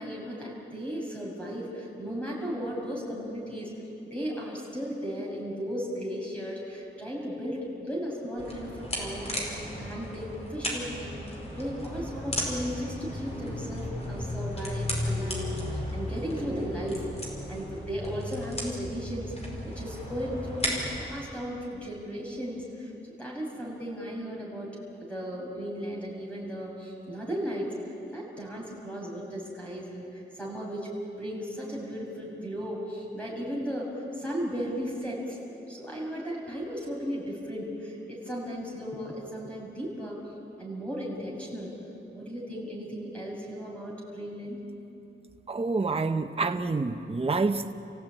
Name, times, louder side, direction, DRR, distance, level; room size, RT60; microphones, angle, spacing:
voice 1, 0.0-3.7 4.1-17.1 17.5-20.6 21.0-24.7 25.1-27.7 28.1-30.9 31.2-35.4 35.7-40.2 40.6-41.7 42.1-44.6, equal, 5° left, -3 dB, 7.0 m, -36 dB
sound 1, 8.4-21.0, left 1 dB, 30° left, 5.1 m, -35 dB
voice 2, 45.5-47.7, right 3 dB, 30° right, 5 dB, 0.9 m, -27 dB
29.0 x 16.5 x 9.1 m, 2.8 s
wide cardioid pair, 145°, 21 cm